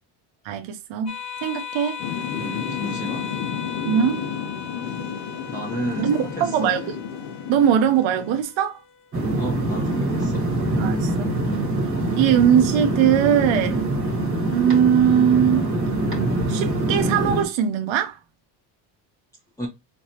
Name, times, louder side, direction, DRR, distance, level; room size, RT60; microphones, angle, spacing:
voice 1, 0.4-1.1 1.4-2.0 3.8-4.2 6.0-6.8 7.5-8.8 10.8-11.3 12.2-13.9 14.5-15.7 16.5-18.2, right 9 dB, 75° right, 0.8 m, -20 dB
sound 1, 1.1-10.0, left 7 dB, 35° left, 1.1 m, -38 dB
Thunder / Rain, 2.0-8.4, left 7 dB, 65° left, 1.1 m, -32 dB
voice 2, 2.3-3.3 5.5-6.7 9.4-10.5 19.6-19.7, equal, 5° left, 0.9 m, -32 dB
sound 2, 9.1-17.4, right 2 dB, 25° right, 1.3 m, -24 dB
4.3 x 3.3 x 2.9 m
cardioid pair, 125°, 46 cm